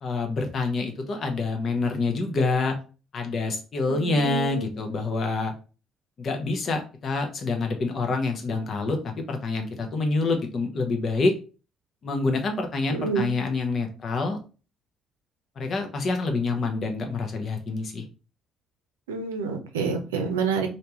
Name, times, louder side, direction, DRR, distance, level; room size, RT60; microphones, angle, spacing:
voice 1, 0.0-2.8 3.1-5.5 6.2-11.3 12.0-14.4 15.6-18.0, left 3 dB, 50° left, 4 dB, 1.0 m, -27 dB
voice 2, 3.9-4.7 12.9-13.3 19.1-20.7, right 5 dB, 85° right, 4 dB, 0.6 m, -28 dB
3.3 x 2.8 x 2.9 m, 0.35 s
hypercardioid pair, 50°, 0 cm